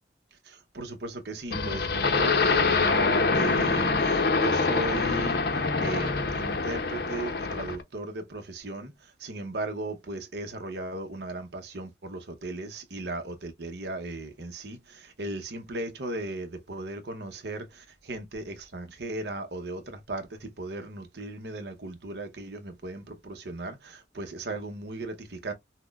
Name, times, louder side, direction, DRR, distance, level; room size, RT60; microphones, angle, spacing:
voice 1, 0.4-5.4 5.8-25.5, right 2 dB, 65° right, 0.8 m, -37 dB
sound 1, 1.5-7.8, left 4 dB, 55° left, 0.6 m, -25 dB
5.8 x 2.2 x 2.3 m
head